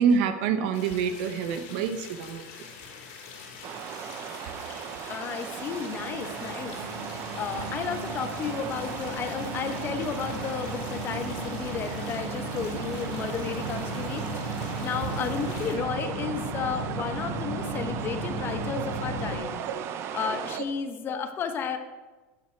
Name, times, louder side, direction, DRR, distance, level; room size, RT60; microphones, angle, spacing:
voice 1, 0.0-2.4 19.5-19.8 20.5-20.6, right 6 dB, 65° right, 9 dB, 1.0 m, -26 dB
sound 1, 0.7-15.7, left 5 dB, 65° left, 3.3 m, -45 dB
sound 2, 3.6-20.6, right 9 dB, 40° right, 0.7 m, -38 dB
voice 2, 5.1-6.8 7.3-14.5 14.8-19.6 20.0-21.8, left 6 dB, 35° left, 8 dB, 1.0 m, -33 dB
sound 3, 5.4-19.4, right 1 dB, 85° right, 3.9 m, -36 dB
12.0 x 7.5 x 4.5 m, 1.3 s
supercardioid pair, 125°, 7 cm